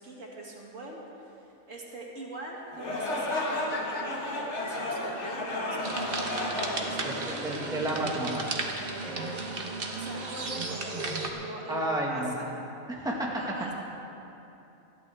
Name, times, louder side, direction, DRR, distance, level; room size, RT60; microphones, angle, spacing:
voice 1, 0.0-7.6 8.8-12.5 13.3-13.7, right 2 dB, 65° right, -3 dB, 2.4 m, -43 dB
sound 1, 2.7-7.9, left 1 dB, 55° left, 1.8 m, -33 dB
sound 2, 5.8-11.3, right 3 dB, 45° right, 1.4 m, -34 dB
voice 2, 7.0-8.5 11.7-12.3 12.9-13.3, right 1 dB, 5° right, -3 dB, 1.7 m, -31 dB
21.0 x 14.0 x 3.5 m, 2.9 s
omnidirectional pair, 1.4 m